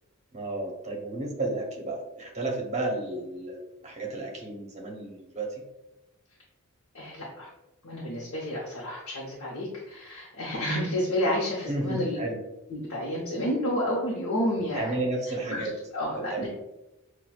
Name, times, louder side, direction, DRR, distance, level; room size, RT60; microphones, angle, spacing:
voice 1, 0.3-5.6 11.7-12.4 14.7-15.7 16.2-16.5, right 2 dB, 30° right, 0 dB, 0.7 m, -32 dB
voice 2, 6.9-7.5 7.8-12.2 12.7-15.0 15.5-15.7 15.9-16.5, equal, 85° left, -5 dB, 0.8 m, -30 dB
5.8 x 2.2 x 2.3 m, 0.96 s
head